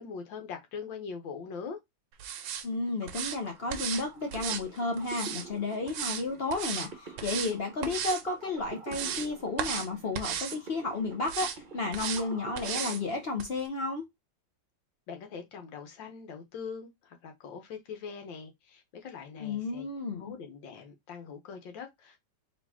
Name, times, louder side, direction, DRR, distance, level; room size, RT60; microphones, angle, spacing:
voice 1, 0.0-1.8 15.1-19.9 20.2-22.2, left 6 dB, 80° left, 1.7 m, -42 dB
sound 1, 2.2-2.6 3.1-3.4 3.7-4.0 4.3-5.5 5.9-6.2 6.5-6.9 7.2-7.5 7.8-8.2 8.6-9.3 9.6-9.9 10.1-10.6 11.2-11.6 11.9-12.2 12.6-13.0 13.4-13.5, right 9 dB, 90° right, 1.4 m, -35 dB
voice 2, 2.6-14.0 19.4-20.2, left 3 dB, 55° left, 0.6 m, -32 dB
sound 2, 2.7-13.5, right 4 dB, 35° right, 0.8 m, -48 dB
4.0 x 3.1 x 3.5 m
omnidirectional pair, 2.0 m